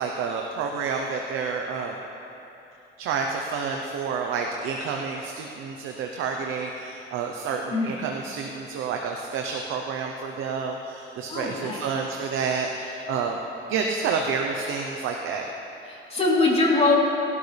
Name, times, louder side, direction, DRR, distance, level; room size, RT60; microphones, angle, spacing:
voice 1, 0.0-2.0 3.0-13.4 13.7-15.5, right 5 dB, 90° right, 2 dB, 0.9 m, -29 dB
voice 2, 11.3-11.9 15.9-16.9, left 3 dB, 30° left, -5 dB, 3.5 m, -22 dB
19.5 x 12.0 x 3.4 m, 2.9 s
cardioid pair, 90°, 20 cm